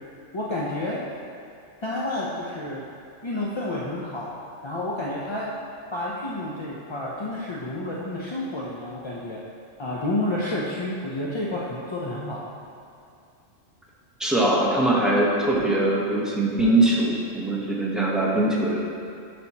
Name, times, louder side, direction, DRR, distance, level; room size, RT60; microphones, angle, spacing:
voice 1, 0.3-1.0 1.8-2.8 3.2-4.3 4.6-5.5 5.9-9.4 9.8-12.5, left 1 dB, 35° left, -6 dB, 0.5 m, -30 dB
voice 2, 14.2-18.8, right 1 dB, ahead, -5 dB, 0.9 m, -22 dB
10.5 x 5.2 x 2.9 m, 2.4 s
omnidirectional pair, 1.3 m